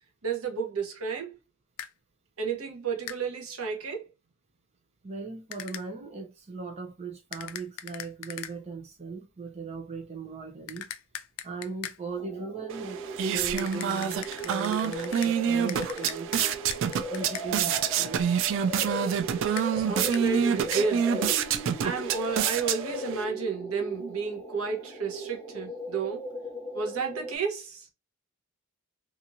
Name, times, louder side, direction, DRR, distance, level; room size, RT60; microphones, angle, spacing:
voice 1, 0.2-1.4 2.4-4.1 19.7-21.2 21.8-26.3 26.7-27.9, right 5 dB, 85° right, 0.8 m, -32 dB
sound 1, 1.8-1.9 3.1-3.2 5.5-5.9 7.3-8.5 10.7-12.0 13.6-15.3 15.7-17.5 19.6-19.7 20.1-20.3 20.7-20.8, left 10 dB, 70° left, 0.3 m, -40 dB
voice 2, 5.0-10.9 11.4-13.0 13.3-16.6 17.1-18.4 19.7-19.8, right 4 dB, 30° right, 0.6 m, -38 dB
sound 2, 12.2-27.4, equal, 10° left, 0.5 m, -38 dB
sound 3, 12.7-23.2, right 8 dB, 65° right, 0.3 m, -28 dB
2.8 x 2.5 x 2.5 m
head